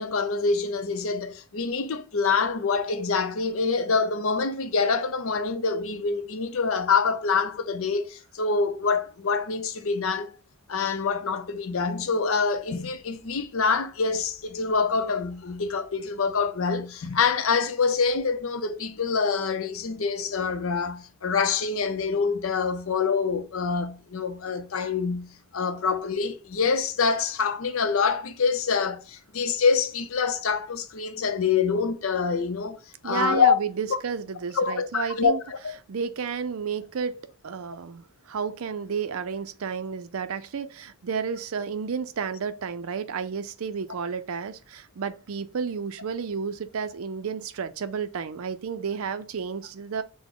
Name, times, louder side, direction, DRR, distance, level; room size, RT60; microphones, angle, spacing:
voice 1, 0.0-10.3 10.7-33.5 33.9-34.0 34.6-35.8, left 5 dB, 70° left, 0.6 m, -26 dB
voice 2, 33.0-35.4 35.9-50.0, right 6 dB, 75° right, 0.5 m, -31 dB
6.0 x 2.1 x 3.6 m
head